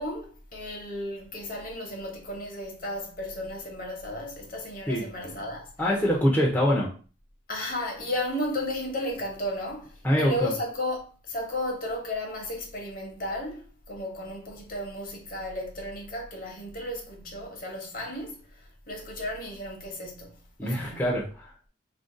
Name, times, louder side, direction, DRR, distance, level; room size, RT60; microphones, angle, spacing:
voice 1, 0.0-5.7 7.5-20.4 20.6-21.1, left 1 dB, 45° left, 0.8 m, -34 dB
voice 2, 5.8-6.9 10.0-10.5 20.6-21.4, equal, 10° left, 0.5 m, -24 dB
2.5 x 2.2 x 3.6 m
head